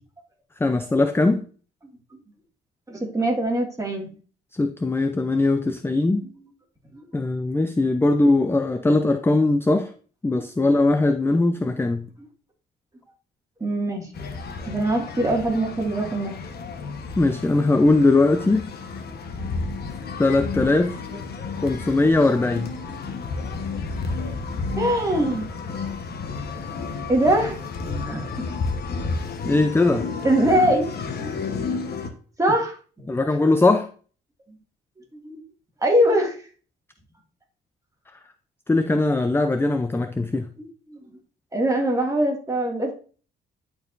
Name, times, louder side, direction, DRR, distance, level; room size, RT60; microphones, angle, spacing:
voice 1, 0.6-1.4 4.5-6.3 7.1-9.9 10.2-12.1 17.2-18.7 20.2-21.0 21.6-22.7 29.4-30.1 33.1-33.9 38.7-40.5, left 2 dB, 10° left, 8 dB, 0.5 m, -20 dB
voice 2, 2.9-4.1 5.9-6.0 6.9-7.0 13.6-14.1 14.7-16.3 24.8-25.5 27.1-27.6 28.0-28.3 30.2-30.9 31.2-31.6 32.4-33.1 35.1-35.4 35.8-36.4 40.6-41.0 41.5-42.9, right 1 dB, 15° right, 0 dB, 2.1 m, -22 dB
sound 1, 14.1-32.1, left 4 dB, 55° left, 1.2 m, -31 dB
10.5 x 4.6 x 2.6 m, 0.40 s
cardioid pair, 90°, 20 cm